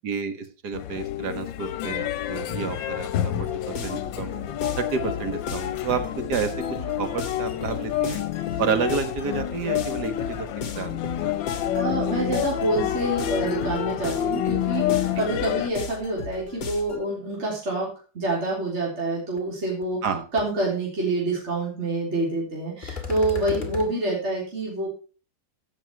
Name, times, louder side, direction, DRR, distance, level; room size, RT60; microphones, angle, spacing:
voice 1, 0.0-4.3 4.8-6.0 6.3-6.5 7.0-8.2 8.6-10.5 10.8-10.9 11.2-11.4 20.0-20.2 23.6-23.7, right 6 dB, 60° right, 8 dB, 2.0 m, -30 dB
sound 1, 0.7-15.7, left 11 dB, 90° left, 1.4 m, -28 dB
sound 2, 3.3-17.0, left 5 dB, 55° left, 1.8 m, -36 dB
voice 2, 11.7-20.0 20.3-24.9, right 2 dB, 35° right, -3 dB, 4.0 m, -27 dB
sound 3, 19.4-19.5 19.8-20.1 20.4-20.5 22.8-23.9, left 6 dB, 25° left, 2.2 m, -34 dB
15.5 x 7.2 x 4.7 m, 0.36 s
omnidirectional pair, 2.0 m